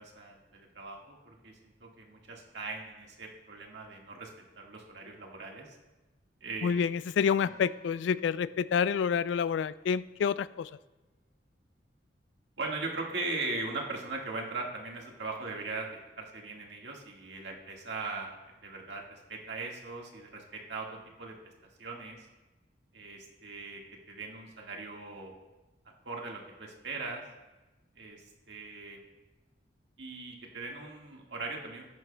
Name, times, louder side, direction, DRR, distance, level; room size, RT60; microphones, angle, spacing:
voice 1, 0.0-5.8 6.4-7.0 7.4-7.5 12.6-15.9 16.2-21.4 21.8-22.3 22.9-23.8 24.1-25.3 26.1-27.2 28.0-29.0 30.0-31.9, right 3 dB, 75° right, 0 dB, 1.7 m, -40 dB
voice 2, 6.6-10.7, left 7 dB, 80° left, 17 dB, 0.3 m, -28 dB
sound 1, 7.4-10.0, right 1 dB, 45° left, 1.1 m, -58 dB
15.0 x 10.5 x 2.2 m, 1.1 s
head